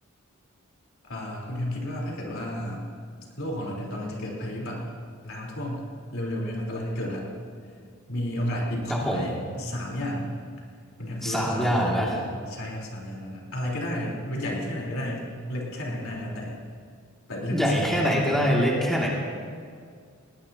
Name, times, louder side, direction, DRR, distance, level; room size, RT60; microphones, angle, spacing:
voice 1, 1.1-2.8 3.4-4.8 5.2-5.8 6.1-7.3 8.1-10.4 11.0-11.7 11.9-16.6 17.3-18.1, left 1 dB, 75° left, -3 dB, 3.8 m, -32 dB
voice 2, 8.9-9.3 11.2-12.2 17.5-19.1, equal, ahead, -4 dB, 2.4 m, -24 dB
20.0 x 18.5 x 2.9 m, 2.1 s
head